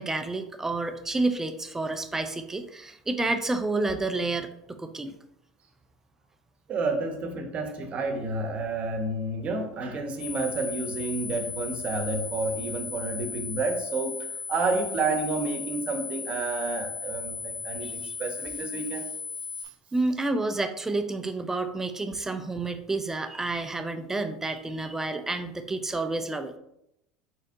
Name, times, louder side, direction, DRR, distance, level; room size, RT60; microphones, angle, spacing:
voice 1, 0.0-5.1 17.8-18.1 19.9-26.5, right 2 dB, 15° right, 8 dB, 0.5 m, -30 dB
voice 2, 6.7-19.1, right 3 dB, 40° right, 5 dB, 0.9 m, -30 dB
sound 1, 10.2-19.7, left 5 dB, 10° left, 1.2 m, -36 dB
4.1 x 4.0 x 2.7 m, 0.80 s
hypercardioid pair, 80°, 3 cm